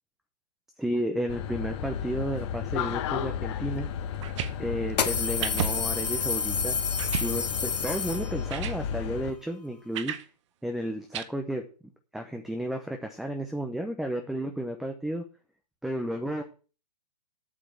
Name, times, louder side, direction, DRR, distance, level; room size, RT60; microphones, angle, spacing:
voice 1, 0.8-3.9 4.6-6.8 7.2-10.1 10.6-11.6 12.1-15.2 15.8-16.4, right 1 dB, ahead, 5 dB, 0.8 m, -32 dB
sound 1, 1.3-9.3, left 8 dB, 45° left, 1.2 m, -33 dB
sound 2, 3.8-3.9 4.9-8.7, left 6 dB, 80° left, 1.7 m, -30 dB
sound 3, 4.1-4.5 5.4-5.7 6.2-6.3 7.0-7.3 8.1-8.2 8.5-8.8 9.9-10.2 11.1-11.2, right 10 dB, 45° right, 1.0 m, -32 dB
8.4 x 6.8 x 7.5 m, 0.36 s
hypercardioid pair, 140°, 21 cm